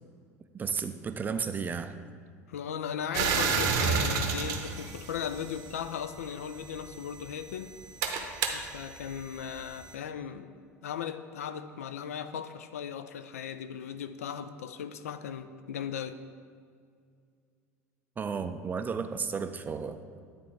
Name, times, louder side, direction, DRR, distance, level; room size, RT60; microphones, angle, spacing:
voice 1, 0.5-2.0 18.2-20.0, right 6 dB, 20° right, 10 dB, 0.4 m, -33 dB
voice 2, 2.5-7.7 8.5-10.5 10.8-16.2, left 8 dB, 70° left, 10 dB, 0.4 m, -37 dB
sound 1, 3.1-5.8 6.7-9.9, right 5 dB, 50° right, 0.8 m, -31 dB
9.5 x 4.1 x 4.5 m, 2.2 s
figure-of-eight pair, 70°, 8 cm